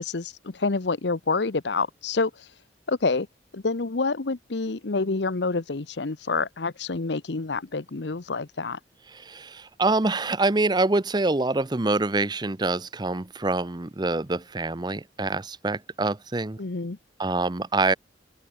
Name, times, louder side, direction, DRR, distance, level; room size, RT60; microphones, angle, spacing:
voice 1, 0.0-2.5 2.9-3.3 3.5-8.8 16.6-17.0, left 3 dB, 75° left, 0.9 m, -27 dB
voice 2, 9.1-16.6 17.2-17.9, right 2 dB, 25° right, 0.7 m, -25 dB
open air
head